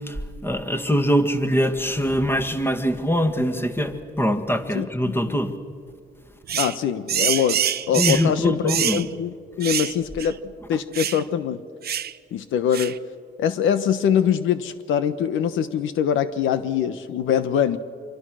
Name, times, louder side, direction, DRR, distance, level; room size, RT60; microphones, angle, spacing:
voice 1, 0.1-5.6 7.9-9.0, equal, 10° left, 7 dB, 2.0 m, -23 dB
voice 2, 4.7-5.3 6.5-7.6 7.9-10.4 10.7-11.6 12.3-13.0 13.4-17.8, left 8 dB, 85° left, 12 dB, 1.1 m, -23 dB
sound 1, 6.5-6.8 7.1-8.3 8.7-9.0 9.6-9.9 10.2-10.3 10.9-11.2 11.8-12.1 12.7-13.0, right 9 dB, 50° right, 0.8 m, -25 dB
26.0 x 23.5 x 6.3 m, 2.1 s
cardioid pair, 90°, 20 cm